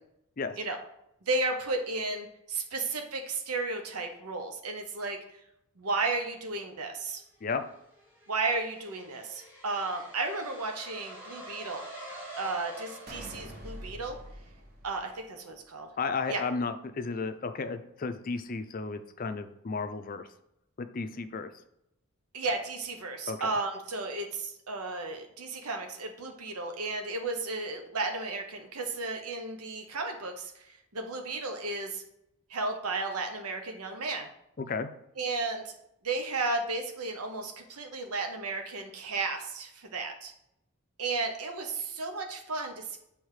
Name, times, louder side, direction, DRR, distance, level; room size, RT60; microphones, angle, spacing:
voice 1, 1.2-5.2 5.8-7.2 8.3-11.8 12.4-14.2 14.8-15.9 16.3-16.4 22.3-32.0 32.5-34.3 35.2-35.7 36.0-40.3 41.0-43.0, right 3 dB, 85° right, 4 dB, 1.0 m, -33 dB
sound 1, 7.2-14.3, equal, 10° right, 2.1 m, -47 dB
sound 2, 13.1-15.6, equal, 40° right, 1.1 m, -45 dB
voice 2, 16.0-20.3 20.8-21.5 23.3-23.5 34.6-34.9, left 4 dB, 40° left, 9 dB, 0.5 m, -33 dB
6.5 x 3.5 x 4.8 m, 0.80 s
head